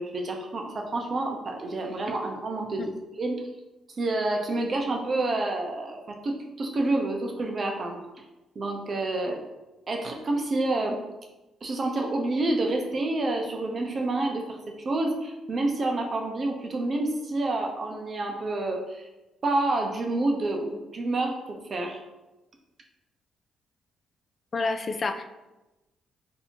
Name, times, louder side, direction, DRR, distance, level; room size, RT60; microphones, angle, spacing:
voice 1, 0.0-3.4 4.0-8.0 8.6-9.4 9.9-11.0 11.6-14.6 14.8-19.1 19.4-22.0, right 2 dB, 40° right, 2 dB, 0.7 m, -28 dB
voice 2, 24.5-25.2, left 3 dB, 40° left, 6 dB, 0.4 m, -28 dB
2.8 x 2.7 x 4.3 m, 1.0 s
cardioid pair, 90°, 0 cm